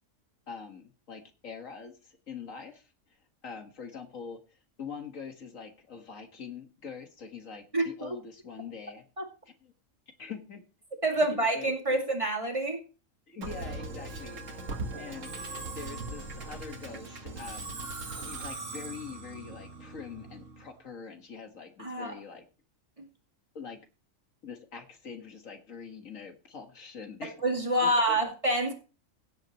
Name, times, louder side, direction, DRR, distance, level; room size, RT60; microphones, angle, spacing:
voice 1, 0.5-2.8 3.4-4.4 4.8-9.0 9.6-9.7 10.2-10.6 11.1-12.0 13.3-14.4 15.0-17.8 18.2-22.4 23.6-23.8 24.4-27.3 27.8-28.2, left 5 dB, 80° left, 5 dB, 2.1 m, -44 dB
voice 2, 7.7-8.1 9.2-9.3 11.0-12.8 21.8-22.1 27.2-28.7, right 1 dB, 25° right, 1 dB, 2.3 m, -27 dB
Musical instrument, 13.4-20.7, right 3 dB, 70° right, 2.0 m, -40 dB
17.0 x 8.3 x 3.0 m, 0.33 s
omnidirectional pair, 1.4 m